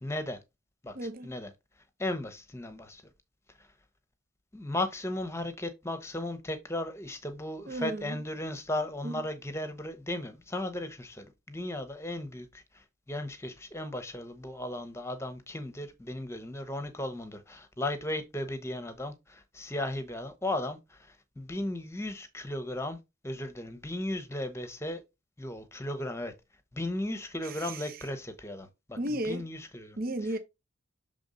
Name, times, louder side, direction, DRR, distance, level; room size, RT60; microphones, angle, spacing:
voice 1, 0.0-0.4 0.8-1.0 1.2-1.5 2.0-3.0 4.5-23.0 23.2-25.0 25.4-26.3 26.7-30.0, left 1 dB, 15° left, 1.0 m, -36 dB
voice 2, 0.9-1.3 7.7-8.2 9.0-9.2 27.4-28.1 29.0-29.5 30.0-30.4, right 1 dB, 45° right, 0.8 m, -34 dB
7.0 x 3.7 x 3.9 m
head